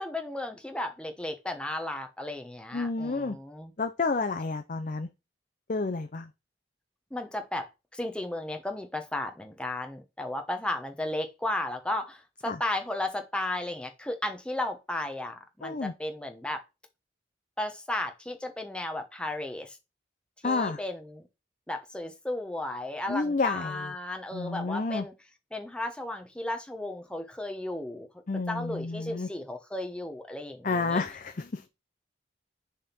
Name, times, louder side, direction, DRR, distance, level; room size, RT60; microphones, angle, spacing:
voice 1, 0.0-3.7 7.1-16.6 17.6-19.8 20.4-21.3 21.7-25.1 25.5-28.1 28.5-31.0, left 1 dB, 5° left, 1.0 m, -34 dB
voice 2, 2.7-3.4 3.8-5.1 5.7-6.3 12.5-12.6 15.6-15.9 20.4-20.8 23.1-23.9 24.3-25.0 28.3-29.3 30.6-31.6, left 3 dB, 45° left, 0.6 m, -30 dB
6.5 x 3.6 x 5.7 m
head